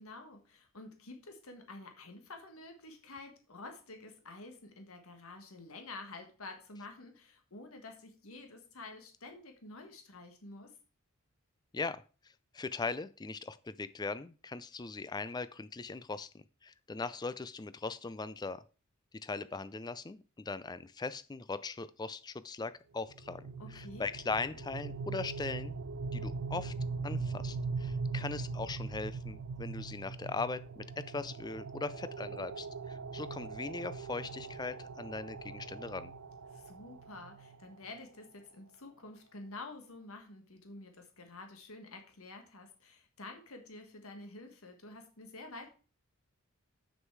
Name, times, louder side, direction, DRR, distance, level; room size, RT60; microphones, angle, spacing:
voice 1, 0.0-10.7 23.6-24.1 36.5-45.7, left 2 dB, 75° left, 5 dB, 1.5 m, -49 dB
voice 2, 12.5-18.6 19.2-23.4 23.7-25.7 26.1-26.7 27.0-36.1, left 3 dB, 20° left, 15 dB, 0.4 m, -39 dB
sound 1, 23.1-38.0, right 4 dB, 70° right, 0.5 m, -41 dB
7.4 x 6.6 x 4.6 m, 0.35 s
head